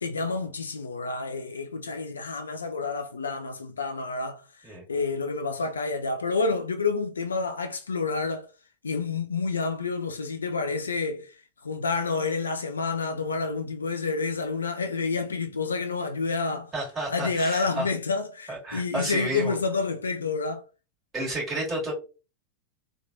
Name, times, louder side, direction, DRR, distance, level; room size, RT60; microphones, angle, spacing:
voice 1, 0.0-4.4 4.9-8.5 8.8-11.4 11.6-16.7 17.1-20.6, left 4 dB, 75° left, 0.3 m, -29 dB
voice 2, 16.7-17.9 18.5-19.5 21.1-21.9, right 1 dB, 20° right, 1.7 m, -31 dB
3.1 x 2.3 x 2.5 m
figure-of-eight pair, 90°, 0 cm